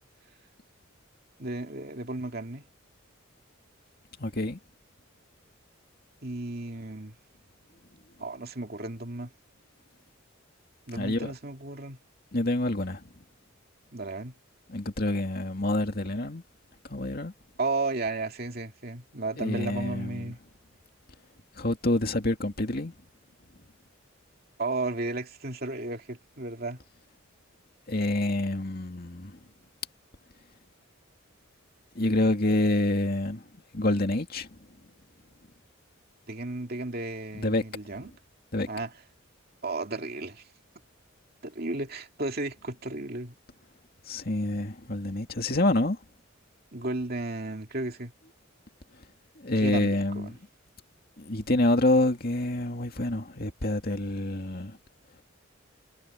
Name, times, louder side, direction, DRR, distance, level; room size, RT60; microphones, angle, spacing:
voice 1, 1.4-2.6 6.2-7.2 8.2-9.3 10.9-12.0 13.9-14.3 17.6-20.4 24.6-26.8 36.3-38.1 38.7-38.9 39.6-40.4 41.4-43.3 46.7-48.1 49.6-50.4, right 2 dB, 50° right, 2.5 m, -34 dB
voice 2, 4.2-4.6 10.9-11.3 12.3-13.0 14.7-16.4 16.9-17.3 19.4-20.3 21.6-22.9 27.9-29.4 32.0-33.4 33.7-34.5 37.3-37.6 38.5-38.7 44.1-46.0 49.4-50.3 51.2-54.8, left 1 dB, 45° left, 2.4 m, -27 dB
head